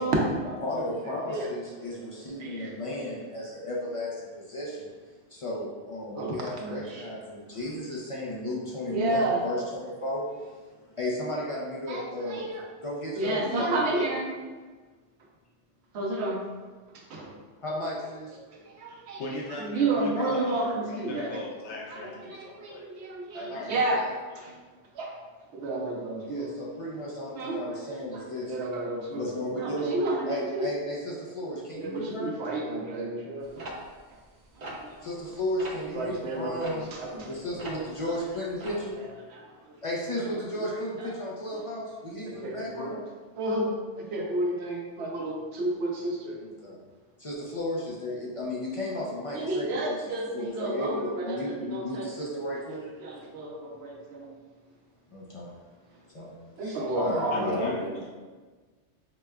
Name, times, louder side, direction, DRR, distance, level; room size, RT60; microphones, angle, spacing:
voice 1, 0.0-0.6 1.3-2.7 6.2-7.1 8.9-9.4 11.9-12.6 13.2-14.3 16.0-16.4 16.9-17.3 18.5-19.2 19.5-21.4 21.9-24.0 24.4-24.5 24.9-25.2 25.5-26.5 27.4-27.6 28.1-28.2 28.5-30.7 31.8-33.7 34.5-35.1 35.9-37.5 37.8-38.2 39.0-39.7 40.2-40.3 41.0-41.1 42.2-43.0 43.4-46.4 49.3-52.3 53.0-54.3 56.6-58.0, right 2 dB, 75° right, -1 dB, 0.9 m, -31 dB
voice 2, 0.6-4.9 5.3-12.5 12.8-14.1 17.6-18.3 23.5-24.1 26.3-32.3 35.0-36.9 37.2-39.0 39.8-43.0 46.4-46.8 47.2-50.0 50.3-52.9 55.1-55.6 56.1-57.8, left 1 dB, 45° left, -4 dB, 0.4 m, -34 dB
voice 3, 18.9-22.9 23.3-23.7 24.5-24.6 57.3-58.1, left 2 dB, 85° left, -3 dB, 0.9 m, -39 dB
sound 1, 33.6-35.3 35.6-35.9 36.6-38.0 38.3-38.9, right 1 dB, 50° right, 0.5 m, -40 dB
4.8 x 2.1 x 2.3 m, 1.4 s
omnidirectional pair, 1.1 m